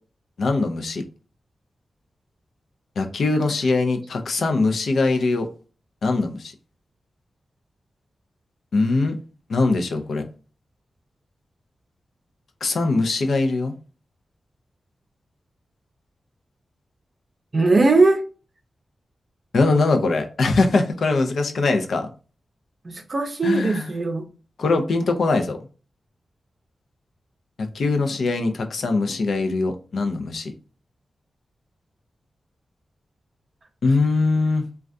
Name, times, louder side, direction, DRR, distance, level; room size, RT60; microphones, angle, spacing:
voice 1, 0.4-1.0 3.0-5.5 6.0-6.5 8.7-9.2 9.5-10.2 12.6-13.7 19.5-22.1 23.4-23.9 24.6-25.6 27.6-30.5 33.8-34.6, left 3 dB, 70° left, 0.5 m, -22 dB
voice 2, 17.5-18.3 22.8-24.3, right 3 dB, 40° right, 0.6 m, -19 dB
3.4 x 2.3 x 2.5 m
wide cardioid pair, 120°, 0 cm